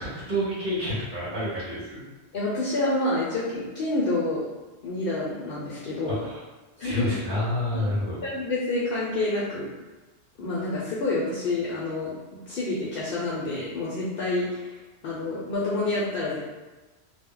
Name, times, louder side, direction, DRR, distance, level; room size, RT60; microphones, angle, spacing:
voice 1, 0.0-2.0 6.2-6.4 6.8-8.2, left 1 dB, 50° right, -9 dB, 0.9 m, -29 dB
voice 2, 2.3-4.5 4.8-6.2 6.8-7.1 7.7-7.9 8.2-9.7 10.4-12.1 12.5-14.8 15.0-16.4, left 2 dB, 65° left, -6 dB, 0.7 m, -28 dB
2.2 x 2.0 x 3.6 m, 1.2 s
omnidirectional pair, 1.1 m